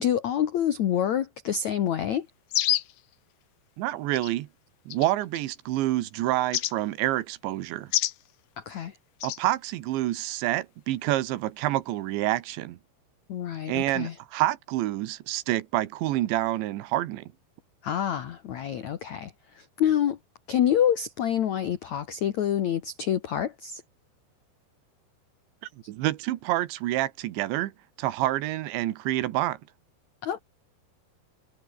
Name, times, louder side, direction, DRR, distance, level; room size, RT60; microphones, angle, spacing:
voice 1, 0.0-2.3 8.6-9.0 13.3-14.2 17.8-20.2 20.5-23.8 30.2-30.4, left 9 dB, 65° left, 1.9 m, -27 dB
sound 1, 2.5-3.0 4.1-4.3 4.9-5.4 6.5-6.7 7.9-8.2 9.2-9.4, left 14 dB, 80° left, 1.8 m, -26 dB
voice 2, 3.8-4.5 4.9-7.9 9.2-12.8 13.7-17.3 25.9-27.7 28.0-29.6, right 15 dB, 90° right, 3.6 m, -28 dB
omnidirectional pair, 5.0 m